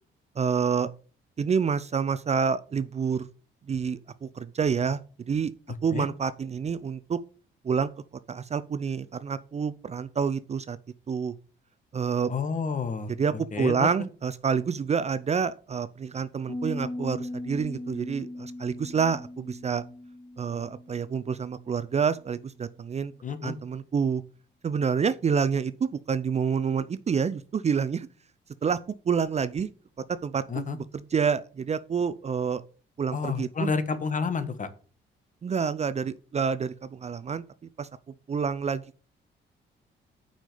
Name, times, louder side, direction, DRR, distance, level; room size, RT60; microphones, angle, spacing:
voice 1, 0.4-0.9 1.4-3.3 3.7-5.0 5.3-5.5 5.8-7.2 7.6-7.9 8.3-10.8 11.1-11.3 11.9-12.3 13.2-19.8 20.4-23.1 23.4-24.2 24.6-28.1 28.6-28.8 29.1-29.7 30.2-32.6 33.0-33.7 35.4-37.4 37.8-37.9 38.3-39.0, right 6 dB, 35° right, 0.5 m, -28 dB
voice 2, 12.3-13.1 13.5-13.9 23.2-23.5 30.5-30.8 33.1-34.7, left 5 dB, 40° left, 1.3 m, -29 dB
Piano, 16.5-22.1, left 1 dB, 20° left, 1.3 m, -39 dB
6.1 x 5.6 x 6.7 m
cardioid pair, 90°, 20 cm